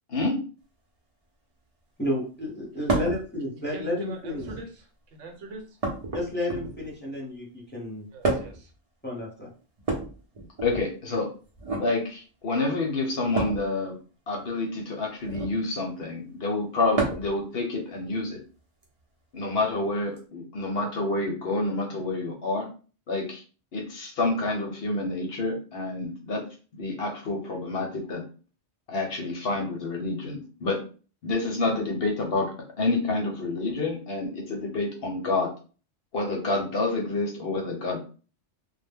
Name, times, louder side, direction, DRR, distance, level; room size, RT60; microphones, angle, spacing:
voice 1, 2.0-4.4 6.1-8.0 9.0-9.5, left 1 dB, 10° left, -4 dB, 0.7 m, -31 dB
sound 1, 2.9-3.2 4.3-4.8 5.8-6.9 8.2-8.7 9.8-10.9 11.6-11.9 13.3-13.6 15.2-15.6 16.9-17.4 18.8-18.9 20.2-20.3, right 2 dB, 40° right, 0.6 m, -29 dB
voice 2, 3.7-4.9 5.2-5.6 8.1-8.7, right 2 dB, 80° right, 4 dB, 1.0 m, -42 dB
voice 3, 10.6-11.3 11.8-13.9 14.3-18.4 19.3-22.7 23.1-23.4 23.7-26.4 26.7-28.2 28.9-30.8 31.2-32.5 32.8-35.5 36.1-38.0, left 2 dB, 60° left, 1 dB, 0.8 m, -28 dB
2.1 x 2.1 x 3.4 m, 0.37 s
omnidirectional pair, 1.2 m